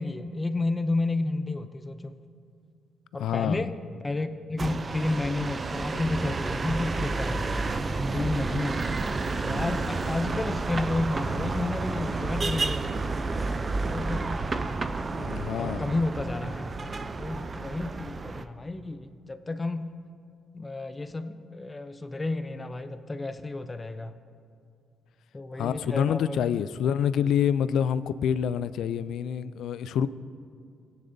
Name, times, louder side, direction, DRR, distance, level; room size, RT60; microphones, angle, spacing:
voice 1, 0.0-2.1 3.1-3.7 4.0-7.7 8.1-8.9 9.4-12.9 13.9-14.4 15.6-16.7 17.2-19.9 20.5-24.1 25.3-26.4, left 2 dB, 20° left, 10 dB, 0.5 m, -31 dB
voice 2, 3.2-3.7 15.1-15.9 25.6-30.1, left 8 dB, 75° left, 15 dB, 0.3 m, -27 dB
sound 1, 4.6-18.4, right 3 dB, 35° right, 0.5 m, -30 dB
16.5 x 10.0 x 2.7 m, 2.3 s
cardioid pair, 90°, 0 cm